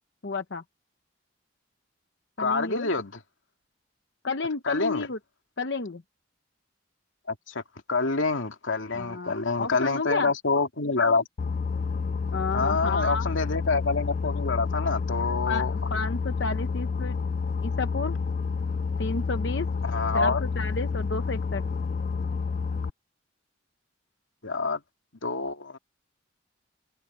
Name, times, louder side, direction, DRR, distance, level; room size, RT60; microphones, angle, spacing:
voice 1, 0.2-0.6 2.4-2.9 4.2-5.2 5.6-6.0 8.9-10.3 12.3-13.3 15.5-17.2 17.6-18.2 19.0-19.7 20.1-21.6, left 3 dB, 60° left, 0.9 m, -31 dB
voice 2, 2.4-3.1 4.6-5.1 7.3-7.6 7.9-11.2 12.5-15.9 19.8-20.4 24.4-24.8 25.2-25.8, left 4 dB, 85° left, 2.4 m, -27 dB
Boat Water vehicle, 11.4-22.9, left 5 dB, 40° left, 0.3 m, -29 dB
head